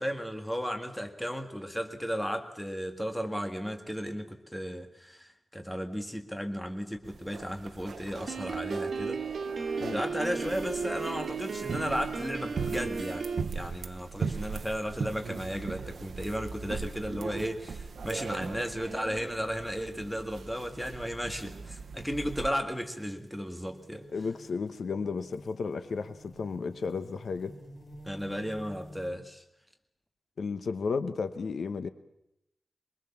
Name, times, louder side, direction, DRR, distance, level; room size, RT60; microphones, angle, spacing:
voice 1, 0.0-9.2 9.9-24.1 28.0-29.4, equal, 5° left, 4 dB, 1.8 m, -34 dB
sound 1, 7.0-22.5, right 5 dB, 90° right, 0.9 m, -40 dB
Piano, 8.3-13.4, right 5 dB, 70° right, 2.3 m, -34 dB
sound 2, 19.4-29.1, equal, 55° left, 4.0 m, -53 dB
voice 2, 24.1-27.5 30.4-31.9, left 4 dB, 80° left, 10 dB, 1.1 m, -33 dB
23.5 x 23.5 x 7.2 m, 0.82 s
wide cardioid pair, 155°, 0 cm